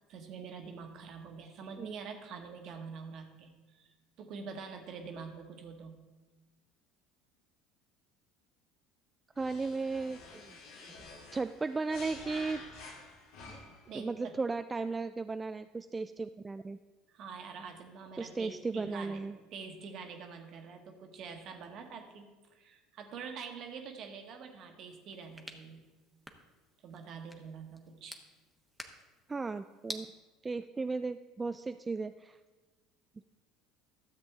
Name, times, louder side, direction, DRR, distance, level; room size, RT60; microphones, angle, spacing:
voice 1, 0.1-6.0 13.9-14.3 17.1-25.8 26.8-28.2, right 5 dB, 55° right, 5 dB, 1.3 m, -46 dB
sound 1, 9.4-13.9, left 3 dB, 70° left, 1.9 m, -49 dB
voice 2, 9.4-10.6 11.3-12.6 13.5-13.6 13.9-16.8 18.2-19.4 29.3-30.1 30.4-32.4, right 4 dB, 20° right, 9 dB, 0.3 m, -35 dB
sound 2, 24.9-30.0, equal, 5° right, 1.1 m, -50 dB
13.0 x 7.4 x 3.5 m, 1.2 s
hypercardioid pair, 70°, 0 cm